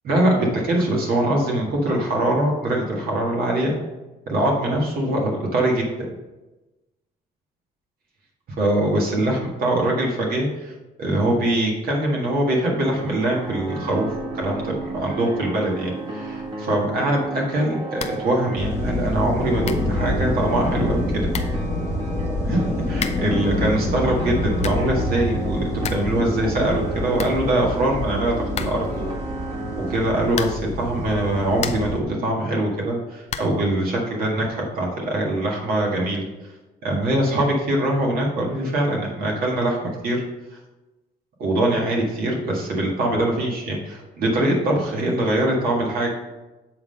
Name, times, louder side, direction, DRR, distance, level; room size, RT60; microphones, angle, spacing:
voice 1, 0.0-3.7 4.3-5.9 8.6-21.3 22.4-29.1 29.8-36.2 36.8-40.2 41.4-46.1, right 1 dB, 60° right, -2 dB, 1.8 m, -23 dB
sound 1, 12.8-30.0, right 2 dB, 30° right, 1.6 m, -33 dB
sound 2, 17.9-18.3 18.6-18.7 19.3-19.4 19.6-20.0 20.9-21.0 21.3-21.7 22.9-23.4 24.3-25.0 25.3-25.4 25.6-26.2 26.4-26.5 26.8-26.9 27.1-27.9 28.5-29.0 30.3-30.8 31.3-32.0 33.3-33.7, left 7 dB, 40° left, 0.6 m, -33 dB
sound 3, 18.6-32.0, left 1 dB, 15° left, 1.1 m, -27 dB
7.9 x 3.8 x 5.4 m, 1.1 s
cardioid pair, 110°, 17 cm